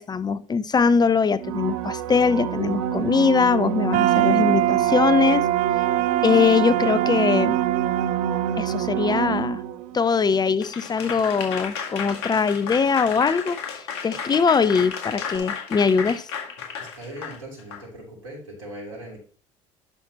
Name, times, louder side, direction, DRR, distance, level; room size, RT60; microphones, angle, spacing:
voice 1, 0.0-5.4 6.2-7.6 8.6-9.6 9.9-16.3, left 5 dB, 25° left, 0.5 m, -21 dB
sound 1, 1.4-10.0 15.4-15.5, right 10 dB, 75° right, 0.7 m, -27 dB
sound 2, 3.9-9.8, right 14 dB, 50° right, 0.4 m, -24 dB
Applause / Crowd, 10.6-17.8, left 7 dB, 65° left, 1.9 m, -33 dB
voice 2, 16.8-19.2, right 1 dB, 90° right, 3.2 m, -39 dB
11.5 x 5.8 x 2.8 m
hypercardioid pair, 60°, 16 cm